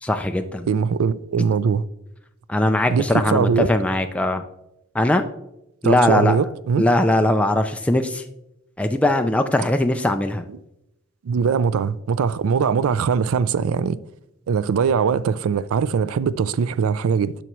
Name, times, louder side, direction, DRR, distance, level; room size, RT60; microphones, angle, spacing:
voice 1, 0.0-0.7 2.5-4.4 4.9-5.3 5.8-6.4 6.8-8.2 8.8-10.4, left 1 dB, 5° left, 0.3 m, -20 dB
voice 2, 0.7-1.8 2.9-3.7 5.8-6.9 11.3-14.0 14.5-17.4, right 6 dB, 90° right, 0.4 m, -21 dB
11.0 x 5.8 x 3.1 m
head